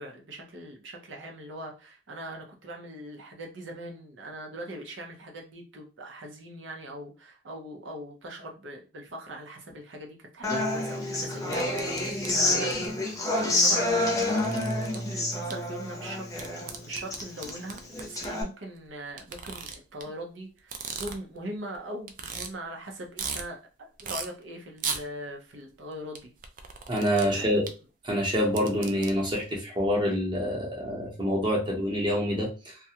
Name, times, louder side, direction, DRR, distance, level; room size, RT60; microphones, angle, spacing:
voice 1, 0.0-13.1 13.4-26.3 27.2-27.6, right 1 dB, 90° right, 2 dB, 0.7 m, -41 dB
Human voice / Acoustic guitar, 10.4-18.4, left 2 dB, 20° left, 0.6 m, -28 dB
sound 1, 11.5-12.9 13.6-13.7 13.9-15.0 15.5-15.6 16.4-18.3 19.2-20.0 20.6-21.4 21.7-21.8 22.1-22.5 22.9-23.4 24.0-24.3 24.8-25.0 26.2-27.3 27.7-27.8 28.3-29.1, right 6 dB, 45° right, 0.3 m, -36 dB
voice 2, 26.9-27.7 28.0-32.8, equal, 25° right, -1 dB, 0.8 m, -27 dB
2.4 x 2.2 x 2.8 m, 0.32 s
head